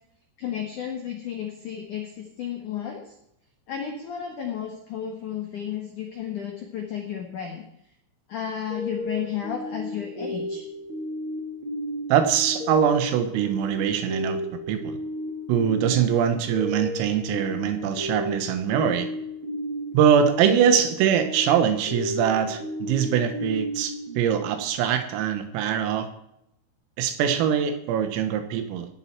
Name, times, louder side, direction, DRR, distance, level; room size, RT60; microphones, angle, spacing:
voice 1, 0.4-3.1 3.7-7.6 8.3-10.7, left 9 dB, 80° left, 2 dB, 1.8 m, -33 dB
sound 1, 8.7-25.0, equal, 30° right, 2.7 m, -33 dB
voice 2, 12.1-14.4 14.7-15.0 15.5-19.1 19.9-26.1 27.0-28.9, right 8 dB, 80° right, 8 dB, 4.0 m, -23 dB
17.5 x 11.0 x 4.6 m, 0.77 s
omnidirectional pair, 6.0 m